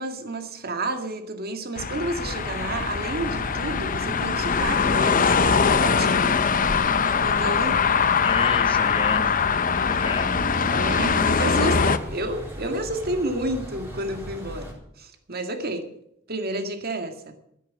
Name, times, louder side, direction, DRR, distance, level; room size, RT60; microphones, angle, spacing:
voice 1, 0.0-6.4 7.2-7.8 10.7-15.9 16.3-17.3, right 1 dB, 50° right, 6 dB, 2.1 m, -30 dB
sound 1, 1.8-12.0, left 6 dB, 45° left, 0.7 m, -22 dB
sound 2, 2.1-14.7, equal, 10° right, 3.9 m, -38 dB
voice 2, 8.2-10.4, left 3 dB, 25° left, 10 dB, 1.1 m, -32 dB
13.0 x 10.0 x 7.4 m, 0.77 s
head